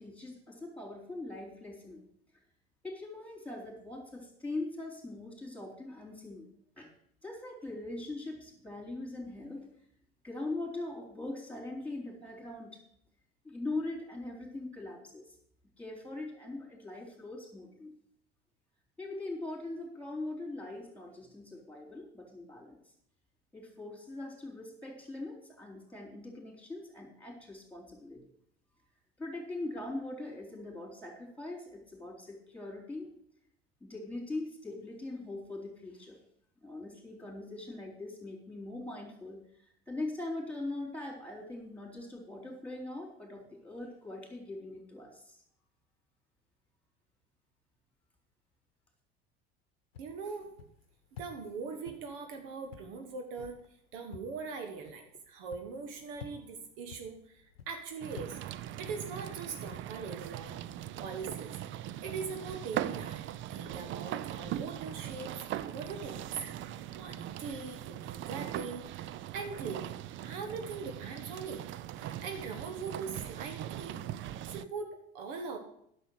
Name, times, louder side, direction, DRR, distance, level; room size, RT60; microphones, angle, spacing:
voice 1, 0.0-2.0 2.8-6.5 6.8-6.9 7.2-9.7 10.2-12.8 13.4-15.2 15.8-17.9 19.0-22.8 23.5-28.2 29.2-33.1 33.8-36.2 36.6-45.4, left 2 dB, 5° left, 0 dB, 3.8 m, -41 dB
sound 1, 49.9-59.9, left 7 dB, 80° left, 0.9 m, -53 dB
voice 2, 50.0-50.5 51.2-53.6 53.9-58.4 58.8-60.6 61.0-61.5 62.0-63.2 63.5-66.3 66.7-69.9 70.2-71.6 71.9-75.6, right 5 dB, 60° right, 5 dB, 1.4 m, -41 dB
sound 2, 58.0-74.6, right 12 dB, 40° right, 0.5 m, -40 dB
10.0 x 6.8 x 6.4 m, 0.70 s
hypercardioid pair, 70°, 30 cm